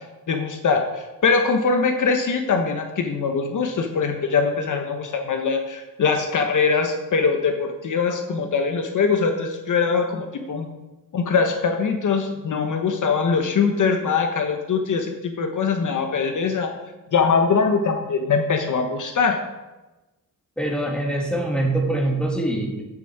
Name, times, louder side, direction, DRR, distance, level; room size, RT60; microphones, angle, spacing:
voice 1, 0.0-10.7 11.1-16.7 17.1-19.4, left 5 dB, 55° left, 5 dB, 1.1 m, -22 dB
voice 2, 20.6-22.8, right 1 dB, 5° left, 0 dB, 2.2 m, -24 dB
9.2 x 7.7 x 4.7 m, 1.1 s
cardioid pair, 105°, 36 cm